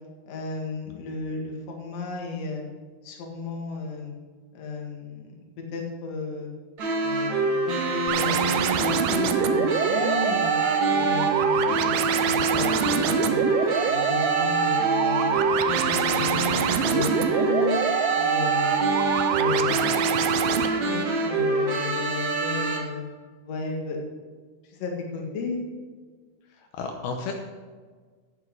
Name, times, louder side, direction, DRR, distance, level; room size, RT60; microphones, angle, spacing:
voice 1, 0.3-2.6 3.0-4.1 4.5-5.3 5.7-6.5 7.0-7.6 7.9-10.6 10.9-13.5 13.9-15.5 15.8-16.6 16.9-17.8 18.2-18.9 19.3-20.1 20.5-23.0 23.4-24.0 24.6-25.6, left 4 dB, 50° left, 0 dB, 2.3 m, -33 dB
sound 1, 6.8-22.8, right 2 dB, 65° right, 1.1 m, -26 dB
sound 2, 8.1-20.7, right 8 dB, 85° right, 1.9 m, -25 dB
voice 2, 26.5-27.3, left 4 dB, 75° left, 3 dB, 2.6 m, -33 dB
9.5 x 8.3 x 6.4 m, 1.5 s
omnidirectional pair, 4.7 m